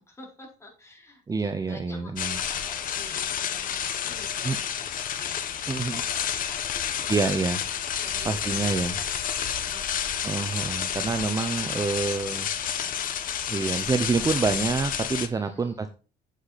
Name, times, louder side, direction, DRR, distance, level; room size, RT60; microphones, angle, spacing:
voice 1, 0.0-7.3 8.0-9.1 9.3-11.0 11.3-11.8 14.1-14.4 15.3-15.8, left 2 dB, 15° left, 0 dB, 4.3 m, -49 dB
voice 2, 1.3-2.4 4.4-4.6 5.7-6.0 7.1-7.6 8.2-9.0 10.2-12.5 13.5-15.9, right 4 dB, 20° right, 8 dB, 0.8 m, -27 dB
sound 1, 2.2-15.3, left 9 dB, 55° left, 1.2 m, -30 dB
8.2 x 8.1 x 4.2 m, 0.35 s
cardioid pair, 110°, 17 cm